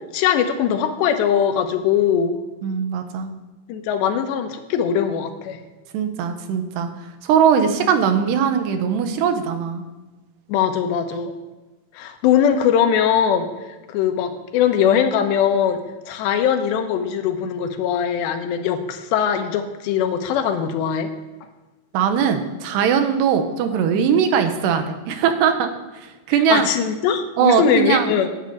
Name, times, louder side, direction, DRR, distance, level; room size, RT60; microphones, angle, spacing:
voice 1, 0.1-2.4 3.7-5.6 10.5-11.3 12.0-13.5 13.9-15.8 16.1-21.1 26.5-28.3, left 8 dB, 90° left, 7 dB, 3.2 m, -21 dB
voice 2, 2.6-3.3 5.9-6.9 7.2-9.8 21.9-25.7 26.3-26.7 27.4-28.1, right 7 dB, 80° right, 7 dB, 3.1 m, -20 dB
9.7 x 8.6 x 8.5 m, 1.2 s
omnidirectional pair, 4.8 m